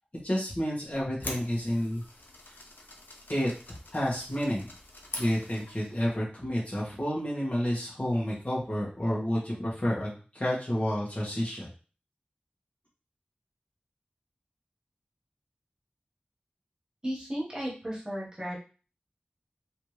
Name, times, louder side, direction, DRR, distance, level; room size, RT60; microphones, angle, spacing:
voice 1, 0.2-2.0 2.4-2.5 3.3-3.5 3.9-4.7 5.2-11.7, equal, 40° left, -7 dB, 1.6 m, -30 dB
sound 1, 0.9-6.0, left 2 dB, 80° left, 0.7 m, -44 dB
voice 2, 17.0-18.6, equal, 20° right, -4 dB, 1.5 m, -34 dB
3.3 x 2.9 x 3.2 m, 0.36 s
wide cardioid pair, 65°, 3 cm